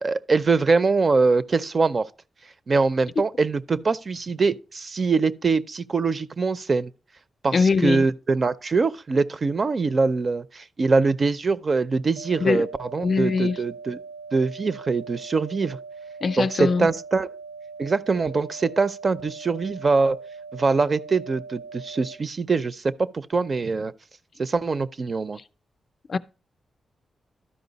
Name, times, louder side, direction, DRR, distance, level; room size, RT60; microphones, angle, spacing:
voice 1, 0.0-2.1 2.7-6.9 7.4-7.5 7.8-14.0 14.3-15.8 16.4-17.3 17.8-20.2 20.5-23.9 24.4-25.4, right 4 dB, 40° right, 0.4 m, -23 dB
voice 2, 7.5-8.0 12.4-12.6 13.0-13.6 16.2-16.9 26.1-26.2, left 4 dB, 45° left, 0.4 m, -22 dB
sound 1, 12.2-22.2, right 4 dB, 85° right, 0.8 m, -41 dB
12.5 x 5.2 x 3.9 m
wide cardioid pair, 115°, 0 cm